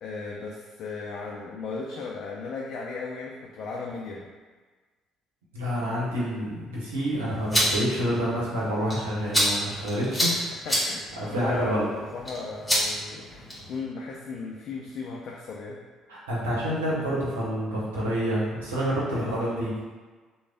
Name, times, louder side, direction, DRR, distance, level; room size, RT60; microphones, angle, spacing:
voice 1, 0.0-4.2 10.3-15.8 19.1-19.5, left 4 dB, 55° left, -2 dB, 0.4 m, -36 dB
voice 2, 5.5-10.3 11.2-11.8 16.1-19.7, equal, 80° right, -7 dB, 0.8 m, -28 dB
sound 1, 7.3-13.8, equal, 10° left, 1.4 m, -29 dB
3.2 x 2.2 x 3.6 m, 1.4 s
figure-of-eight pair, 50°, 0 cm